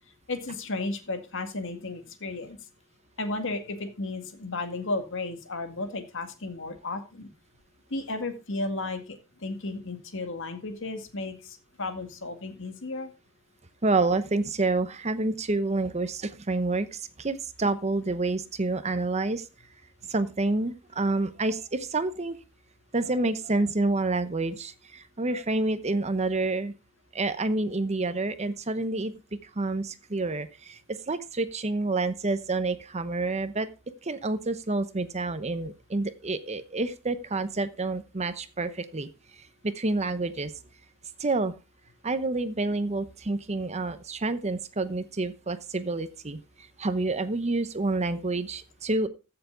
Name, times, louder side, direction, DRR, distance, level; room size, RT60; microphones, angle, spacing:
voice 1, 0.3-2.6 3.2-7.3 7.9-9.0 9.4-11.3 11.8-13.1, left 2 dB, 65° left, 8 dB, 2.0 m, -33 dB
voice 2, 13.8-19.4 20.1-22.4 22.9-26.7 27.1-29.1 29.6-33.7 34.0-39.1 39.6-40.5 41.2-41.5 42.0-46.4 46.8-49.1, right 2 dB, 30° right, 12 dB, 0.9 m, -28 dB
15.0 x 6.9 x 3.8 m, 0.30 s
head